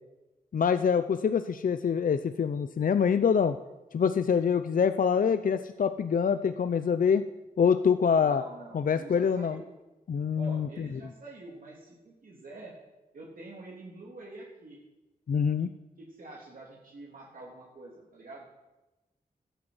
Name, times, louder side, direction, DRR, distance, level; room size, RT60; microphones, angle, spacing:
voice 1, 0.5-3.6 3.9-7.2 7.6-8.4 8.7-9.6 10.1-10.9 15.3-15.7, left 6 dB, 65° left, 10 dB, 0.6 m, -25 dB
voice 2, 8.2-9.6 10.3-12.7 13.1-14.8 16.0-18.6, right 2 dB, 65° right, -3 dB, 3.4 m, -46 dB
13.0 x 11.5 x 8.1 m, 1.0 s
wide cardioid pair, 80°, 15 cm